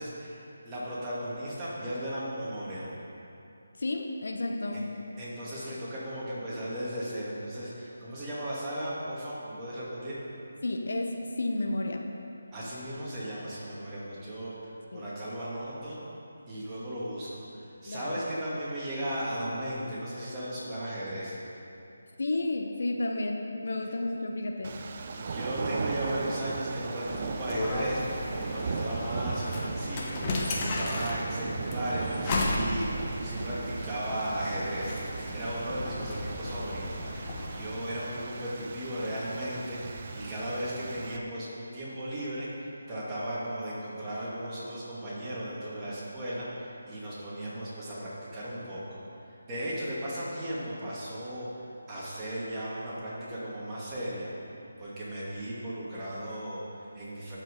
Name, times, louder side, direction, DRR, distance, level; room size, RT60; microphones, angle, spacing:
voice 1, 0.0-2.9 4.7-4.8 5.2-10.2 12.5-16.0 16.5-21.4 25.2-35.0 35.3-54.3 54.8-57.4, right 1 dB, 15° right, -9 dB, 2.3 m, -36 dB
voice 2, 3.8-4.9 10.6-12.0 14.9-15.1 17.9-18.2 22.2-24.8, left 2 dB, 65° left, 2 dB, 1.0 m, -31 dB
sound 1, 24.6-41.2, right 4 dB, 40° right, 0.5 m, -37 dB
sound 2, 27.1-37.6, left 2 dB, 25° left, 1.0 m, -35 dB
12.0 x 5.6 x 5.4 m, 2.7 s
figure-of-eight pair, 155°, 0 cm